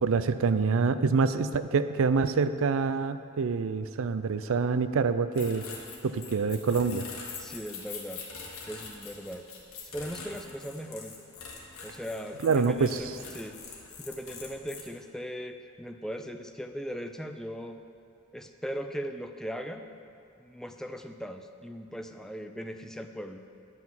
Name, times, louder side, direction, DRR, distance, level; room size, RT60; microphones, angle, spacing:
voice 1, 0.0-5.6 6.0-7.0 12.4-13.0, right 5 dB, 65° right, 12 dB, 0.4 m, -26 dB
sound 1, 5.3-14.8, left 4 dB, 70° left, 1.7 m, -44 dB
voice 2, 7.4-8.2 8.7-9.5 9.9-11.1 11.8-17.8 18.3-19.9 20.4-23.4, equal, ahead, 6 dB, 0.4 m, -39 dB
10.5 x 5.9 x 7.3 m, 2.5 s
head